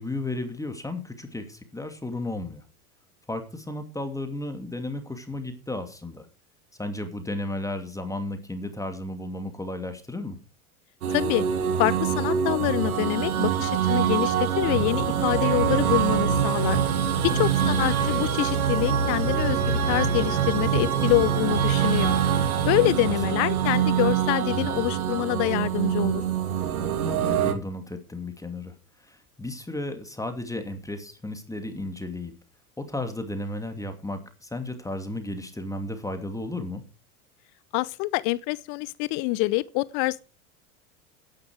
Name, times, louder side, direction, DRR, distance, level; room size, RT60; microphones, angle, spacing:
voice 1, 0.0-2.6 3.3-6.3 6.8-10.4 17.3-17.5 23.1-23.2 27.0-28.7 29.0-32.4 32.8-36.8, left 2 dB, 5° left, 2.5 m, -34 dB
sound 1, 11.0-27.5, right 8 dB, 75° right, 2.2 m, -24 dB
voice 2, 11.1-11.4 11.8-16.8 17.2-22.2 22.6-26.2 37.7-40.2, left 21 dB, 45° left, 0.6 m, -26 dB
13.5 x 10.5 x 4.7 m
hypercardioid pair, 85°, 44 cm